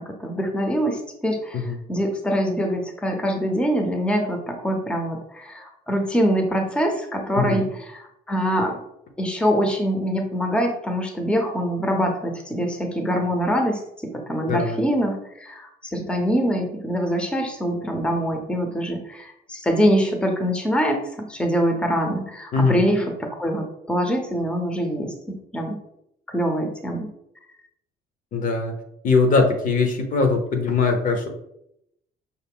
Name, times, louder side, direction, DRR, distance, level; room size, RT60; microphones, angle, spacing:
voice 1, 0.0-8.8 9.2-25.8 26.3-27.1, equal, 5° left, 3 dB, 0.7 m, -24 dB
voice 2, 14.5-14.8 22.5-22.8 28.3-28.7 29.0-31.3, left 4 dB, 50° left, 5 dB, 0.8 m, -21 dB
5.7 x 2.0 x 3.5 m, 0.77 s
cardioid pair, 110°, 17 cm